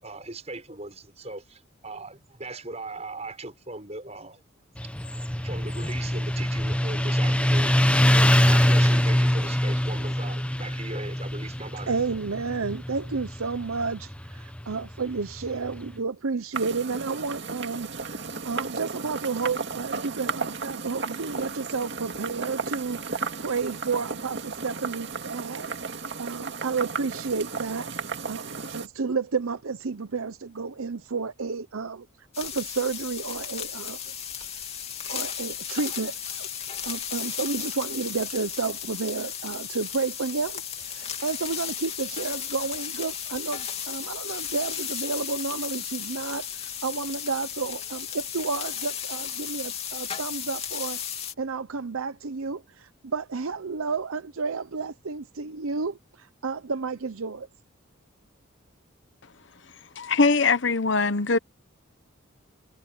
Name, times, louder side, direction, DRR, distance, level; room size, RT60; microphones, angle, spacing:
voice 1, 0.0-4.4 5.4-7.7 8.1-11.9, right 2 dB, 30° right, 5.8 m, -39 dB
Motorcycle, 4.8-15.9, equal, 5° left, 0.8 m, -24 dB
voice 2, 11.9-25.7 26.2-27.9 28.3-32.1 32.4-34.0 35.1-36.5 36.8-46.5 46.8-51.0 51.4-57.5, right 4 dB, 80° right, 0.8 m, -31 dB
sound 1, 16.5-28.9, right 4 dB, 55° right, 2.3 m, -34 dB
sound 2, 32.3-51.3, left 8 dB, 30° left, 3.0 m, -35 dB
voice 3, 60.0-61.4, left 4 dB, 55° left, 0.9 m, -21 dB
head